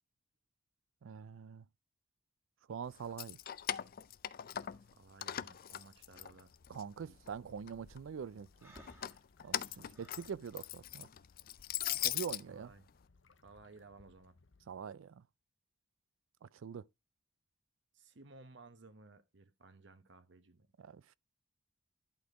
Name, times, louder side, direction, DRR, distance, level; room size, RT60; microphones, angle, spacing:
voice 1, 1.0-1.7 2.7-3.4 6.7-8.7 9.4-11.1 12.0-12.7 14.7-15.2 16.4-16.8 20.8-21.1, right 7 dB, 80° right, 0.4 m, -44 dB
Keys jangling, 3.0-4.9 5.2-6.8 7.2-8.0 8.8-12.4, left 12 dB, 50° left, 0.4 m, -40 dB
voice 2, 4.9-6.5 7.0-7.2 9.8-10.2 12.5-12.9 13.4-14.3 17.9-20.7, right 3 dB, 60° right, 1.0 m, -58 dB
sound 1, 5.9-14.8, left 3 dB, 65° left, 0.8 m, -67 dB
Breathing, 8.6-10.3, equal, 15° right, 1.5 m, -59 dB
11.5 x 4.2 x 4.7 m
head